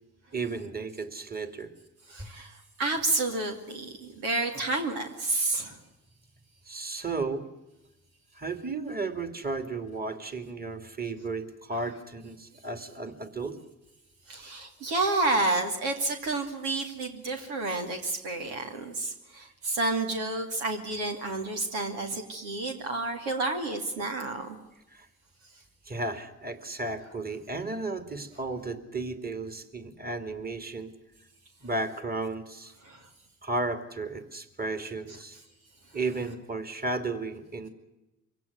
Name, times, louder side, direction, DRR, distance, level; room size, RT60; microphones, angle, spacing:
voice 1, 0.3-1.7 2.2-2.3 6.7-7.5 8.3-13.6 24.9-25.1 25.9-30.9 31.6-32.7 33.4-35.4 35.9-37.7, right 3 dB, 20° right, 8 dB, 2.7 m, -34 dB
voice 2, 2.1-5.8 14.3-24.6 32.8-33.1, right 2 dB, 85° right, 2 dB, 2.6 m, -30 dB
24.5 x 17.0 x 9.5 m, 0.95 s
hypercardioid pair, 45°, 42 cm